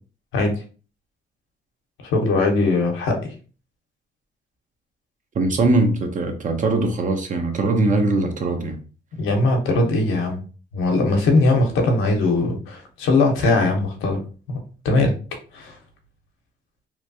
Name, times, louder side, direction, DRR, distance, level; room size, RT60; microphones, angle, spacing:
voice 1, 2.0-3.3 9.2-10.4 10.7-14.2 14.5-14.6 14.8-15.1 15.5-15.7, left 2 dB, 85° left, 0.8 m, -20 dB
voice 2, 5.3-8.8, right 2 dB, 40° right, 0.7 m, -21 dB
2.9 x 2.3 x 2.6 m
cardioid pair, 90°, 20 cm